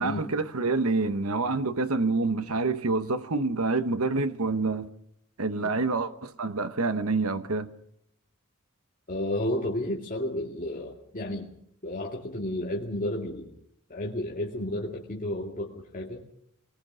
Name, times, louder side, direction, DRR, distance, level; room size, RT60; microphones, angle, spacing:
voice 1, 0.0-4.9 5.4-7.7, right 3 dB, 75° right, 1.1 m, -27 dB
voice 2, 9.1-11.5 11.8-13.5 13.9-16.2, left 1 dB, 40° left, 2.2 m, -32 dB
24.0 x 20.0 x 6.2 m
head